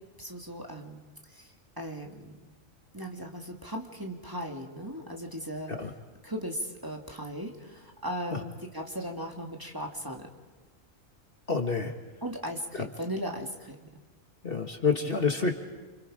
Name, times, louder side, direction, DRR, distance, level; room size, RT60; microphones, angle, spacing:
voice 1, 0.2-1.0 1.3-2.5 2.9-5.7 6.2-10.3 12.2-13.9, equal, 15° right, 1 dB, 2.2 m, -37 dB
voice 2, 11.5-11.9 12.7-12.8 14.4-15.5, left 4 dB, 45° left, 5 dB, 1.8 m, -28 dB
29.0 x 27.0 x 5.0 m, 1.3 s
omnidirectional pair, 1.3 m